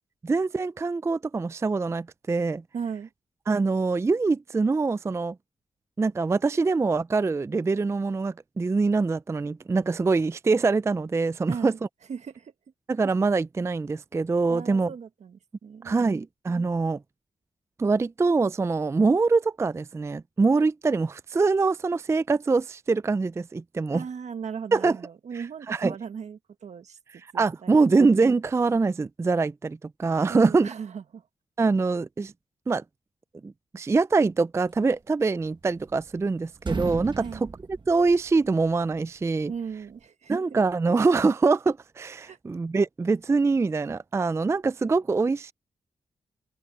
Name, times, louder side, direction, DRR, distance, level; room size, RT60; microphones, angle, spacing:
voice 1, 0.2-2.6 3.5-5.4 6.0-11.7 12.9-14.9 15.8-17.0 17.8-24.0 24.7-25.0 25.7-25.9 27.3-30.7 31.6-32.3 32.7-32.8 33.4-37.5 37.9-39.5 40.3-45.5, right 4 dB, 25° right, 0.3 m, -24 dB
voice 2, 2.7-3.1 11.5-11.8 12.1-12.5 14.5-16.2 23.9-27.0 27.3-27.9 30.3-31.3 37.2-37.4 39.5-40.4 42.3-42.4, right 6 dB, 70° right, 1.3 m, -37 dB
sound 1, 35.4-36.3 36.5-38.7, right 4 dB, 40° right, 1.5 m, -35 dB
cardioid pair, 75°, 12 cm